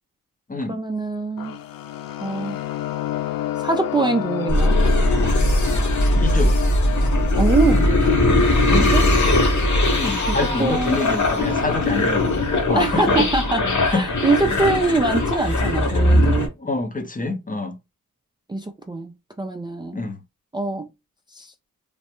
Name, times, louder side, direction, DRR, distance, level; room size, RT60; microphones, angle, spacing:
voice 1, 0.7-1.6 2.2-2.6 3.6-4.8 7.4-7.9 8.7-9.1 10.3-11.0 12.8-16.5 18.5-19.1 19.4-20.0 20.5-20.9 21.4-21.5, right 3 dB, 15° right, 0.4 m, -23 dB
sound 1, 1.4-13.3, left 12 dB, 70° left, 0.5 m, -31 dB
sound 2, 4.5-16.5, left 1 dB, 55° left, 1.2 m, -19 dB
voice 2, 6.1-6.7 8.6-9.0 9.9-13.3 13.9-14.1 14.4-14.6 16.6-17.8 19.9-20.2, left 2 dB, 25° left, 0.7 m, -27 dB
3.2 x 2.0 x 3.0 m
cardioid pair, 55°, 36 cm